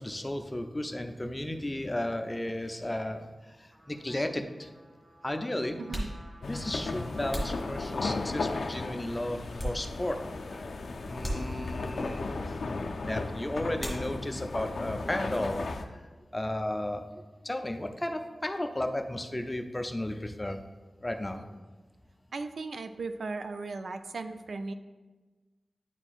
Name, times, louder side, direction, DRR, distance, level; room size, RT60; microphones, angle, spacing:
voice 1, 0.0-4.7 5.2-5.8 6.5-10.7 11.0-12.6 13.0-16.0 16.3-20.6 21.0-21.4, left 1 dB, 15° left, 6 dB, 0.4 m, -34 dB
Trumpet, 3.4-9.4, equal, 35° right, 1.1 m, -54 dB
sound 1, 5.8-8.4 8.9-10.3 10.6-10.7 11.2-12.0 13.7-14.5 14.8-15.5 15.8-17.9, equal, ahead, 1.8 m, -40 dB
voice 2, 5.8-6.1 21.3-21.4 22.3-24.7, right 3 dB, 70° right, 8 dB, 0.3 m, -37 dB
sound 2, 6.4-15.8, left 3 dB, 80° left, 0.4 m, -35 dB
9.7 x 4.3 x 2.4 m, 1.3 s
wide cardioid pair, 120°, 0 cm